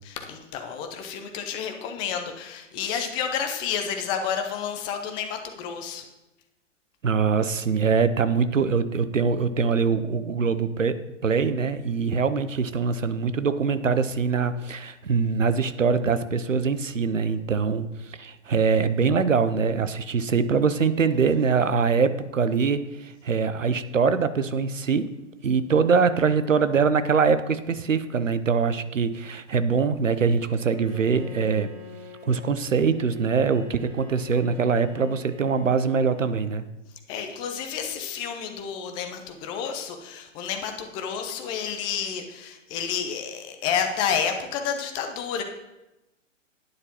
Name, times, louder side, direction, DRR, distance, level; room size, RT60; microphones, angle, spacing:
voice 1, 0.0-6.0 37.1-45.4, left 7 dB, 15° left, 5 dB, 0.5 m, -30 dB
voice 2, 7.0-25.1 25.4-31.7 32.3-36.7, right 5 dB, 80° right, 12 dB, 0.8 m, -23 dB
Bowed string instrument, 30.5-36.8, left 5 dB, 40° right, 3.3 m, -44 dB
11.5 x 9.5 x 3.0 m, 0.98 s
figure-of-eight pair, 125°, 38 cm